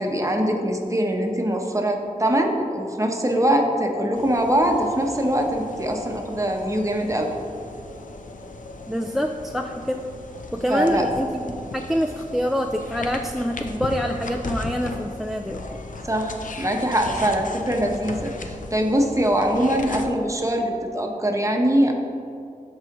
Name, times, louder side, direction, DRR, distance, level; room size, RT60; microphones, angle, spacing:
voice 1, 0.0-7.3 10.7-11.1 16.0-21.9, right 1 dB, 20° right, 2 dB, 0.9 m, -23 dB
sound 1, 4.1-20.1, left 2 dB, 65° left, 0.6 m, -37 dB
voice 2, 8.9-10.0 10.5-15.6, equal, ahead, 4 dB, 0.3 m, -26 dB
13.0 x 4.8 x 3.0 m, 2.5 s
wide cardioid pair, 75°, 14 cm